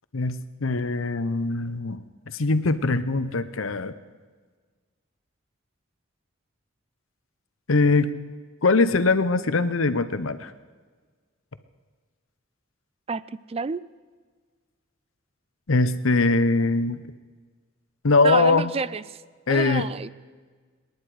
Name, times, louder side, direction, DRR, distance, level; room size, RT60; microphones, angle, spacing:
voice 1, 0.1-3.9 7.7-8.1 8.6-10.5 15.7-17.0 18.0-18.7 19.5-19.9, left 3 dB, 85° left, 12 dB, 0.9 m, -22 dB
voice 2, 13.5-13.8 18.2-19.0 19.5-20.1, right 5 dB, 30° right, 18 dB, 0.4 m, -28 dB
26.5 x 11.0 x 4.9 m, 1.5 s
head